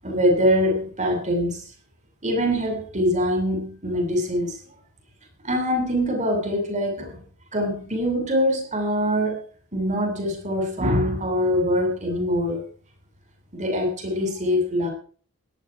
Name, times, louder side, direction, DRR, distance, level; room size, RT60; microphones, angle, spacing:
voice 1, 0.0-1.7 2.2-4.6 5.4-7.2 7.5-9.4 9.7-12.6 13.5-14.9, equal, 35° right, 3 dB, 7.7 m, -23 dB
17.5 x 13.0 x 5.0 m, 0.43 s
head